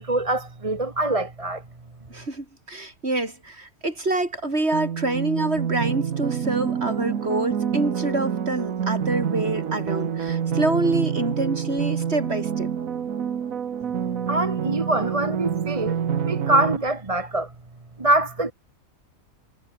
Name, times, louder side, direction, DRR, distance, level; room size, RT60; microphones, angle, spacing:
voice 1, 0.0-1.6 14.3-16.0 16.2-17.5 18.0-18.5, right 2 dB, 25° right, 1.5 m, -24 dB
voice 2, 2.1-12.7, right 2 dB, 50° right, 4.7 m, -26 dB
sound 1, 4.7-16.8, right 8 dB, 75° right, 1.7 m, -27 dB
omnidirectional pair, 1.5 m